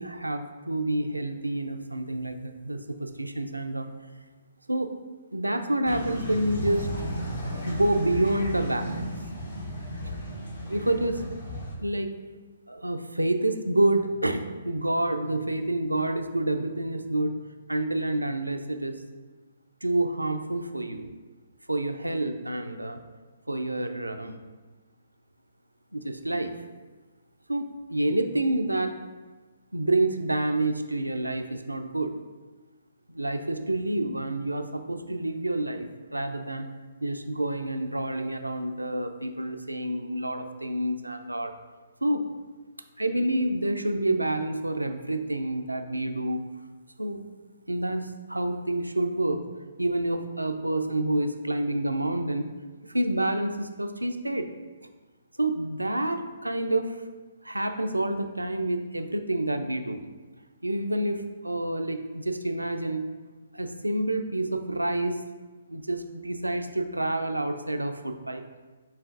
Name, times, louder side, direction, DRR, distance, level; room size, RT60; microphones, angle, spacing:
voice 1, 0.0-3.9 4.7-5.0 5.3-6.9 7.6-9.1 10.7-11.2 11.8-12.2 12.7-17.4 17.7-19.0 19.8-21.1 21.7-23.0 23.5-24.4 25.9-26.5 27.5-28.9 29.7-32.1 33.1-36.7 37.0-41.5 42.0-42.3 43.0-46.5 47.0-47.3 47.7-49.4 49.8-52.5 52.9-54.5 55.4-57.0 57.4-60.0 60.6-63.0 63.5-65.2 65.7-68.4, right 1 dB, 90° right, 7 dB, 0.3 m, -28 dB
sound 1, 5.9-11.7, equal, 70° left, 1.1 m, -34 dB
7.2 x 2.5 x 2.5 m, 1.3 s
figure-of-eight pair, 130°, 0 cm